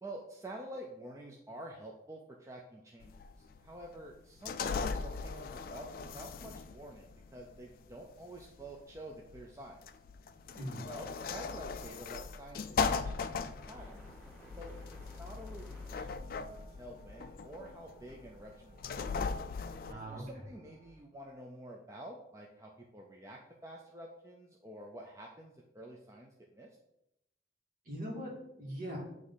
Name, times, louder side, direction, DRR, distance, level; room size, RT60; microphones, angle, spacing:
voice 1, 0.0-3.1 3.4-9.8 10.8-14.1 14.6-16.5 16.8-19.0 19.9-26.8, right 1 dB, 15° right, -1 dB, 0.4 m, -49 dB
sound 1, 3.0-19.9, left 5 dB, 50° left, 0.3 m, -39 dB
sound 2, 13.6-21.0, equal, 10° left, 2.0 m, -57 dB
voice 2, 19.9-20.4 27.9-29.0, equal, 45° right, -3 dB, 2.0 m, -41 dB
7.8 x 3.1 x 3.9 m, 0.83 s
head